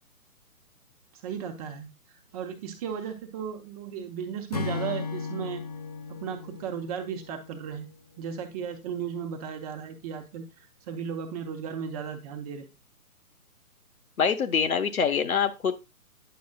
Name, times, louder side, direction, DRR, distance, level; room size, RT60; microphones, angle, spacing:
voice 1, 1.2-1.9 2.3-5.6 6.2-7.9 8.2-10.5 10.9-12.7, right 7 dB, 25° right, 5 dB, 1.0 m, -35 dB
Acoustic guitar / Strum, 4.5-7.9, left 4 dB, 30° left, 0.4 m, -36 dB
voice 2, 14.2-15.7, left 6 dB, 65° left, 8 dB, 1.3 m, -25 dB
10.0 x 6.2 x 2.4 m, 0.25 s
figure-of-eight pair, 135°, 45 cm